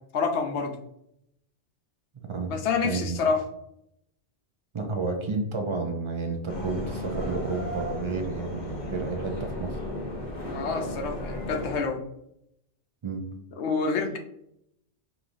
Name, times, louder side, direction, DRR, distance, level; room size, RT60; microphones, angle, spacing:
voice 1, 0.1-0.8 2.5-3.4 10.4-12.0 13.6-14.2, left 5 dB, 75° left, 5 dB, 0.9 m, -27 dB
voice 2, 2.1-2.6 2.8-3.2 4.7-9.8 13.0-13.3, right 3 dB, 50° right, 3 dB, 0.3 m, -31 dB
sound 1, 6.5-11.8, equal, 45° left, 0.9 m, -34 dB
5.0 x 3.0 x 2.5 m, 0.78 s
omnidirectional pair, 1.2 m